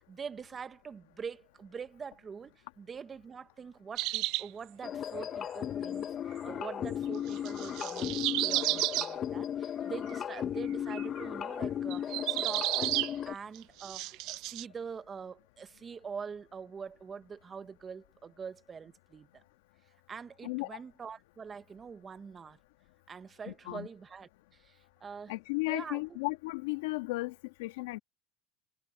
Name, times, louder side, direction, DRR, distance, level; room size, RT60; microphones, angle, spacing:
voice 1, 0.0-6.1 6.4-12.9 13.3-19.4 20.1-22.6 23.1-25.3 25.7-26.0, right 6 dB, 25° right, 1.2 m, -44 dB
sound 1, 4.0-4.5 7.3-9.1 10.1-10.4 10.9-11.2 11.9-13.1 13.6-14.6, right 19 dB, 60° right, 0.5 m, -32 dB
sound 2, 4.8-13.3, left 9 dB, 35° left, 0.9 m, -36 dB
voice 2, 20.4-20.8 23.5-23.9 25.3-28.0, left 23 dB, 85° left, 1.9 m, -35 dB
supercardioid pair, 115°, 0 cm